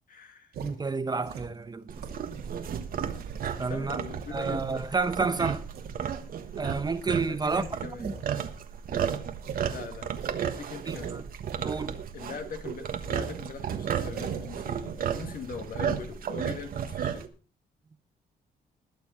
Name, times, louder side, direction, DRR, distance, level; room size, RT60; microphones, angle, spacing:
voice 1, 0.1-0.5 3.7-4.9 7.3-8.1 9.7-11.2 12.1-17.3, left 5 dB, 65° left, 2.4 m, -41 dB
sound 1, 0.5-0.7 1.2-2.6 3.0-5.0 5.7-6.0 6.4-6.5 6.9-7.0 7.4-8.2 8.5-8.6 8.9-9.0 9.4-9.7 10.1-12.2 12.5-12.6 13.0-13.4 14.0-14.6, right 7 dB, 85° right, 2.5 m, -41 dB
voice 2, 0.6-1.9 3.6-4.0 4.3-5.6 6.6-7.6 8.0-8.1 10.9-11.2 11.6-11.9, right 4 dB, 25° right, 0.8 m, -30 dB
sound 2, 1.9-17.3, right 8 dB, 65° right, 1.4 m, -34 dB
21.0 x 7.0 x 4.3 m
cardioid pair, 105°, 16 cm